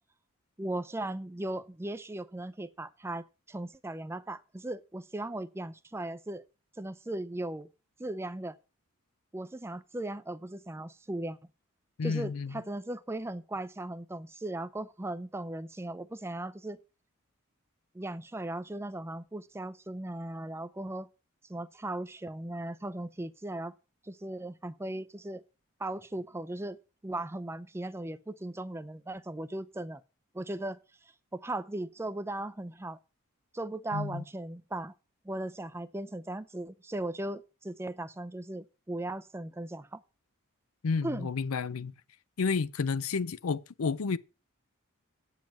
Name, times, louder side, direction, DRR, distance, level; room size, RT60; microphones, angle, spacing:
voice 1, 0.6-6.4 6.8-7.7 8.0-8.6 9.3-11.4 12.0-16.8 17.9-21.1 21.5-23.7 24.0-25.4 25.8-26.8 27.0-30.0 30.3-33.0 33.5-34.9 35.2-40.0 41.0-41.3, right 1 dB, 10° right, 0.5 m, -37 dB
voice 2, 12.0-12.5 33.9-34.2 40.8-41.9 42.4-44.2, left 5 dB, 80° left, 0.5 m, -31 dB
9.0 x 7.5 x 5.9 m
head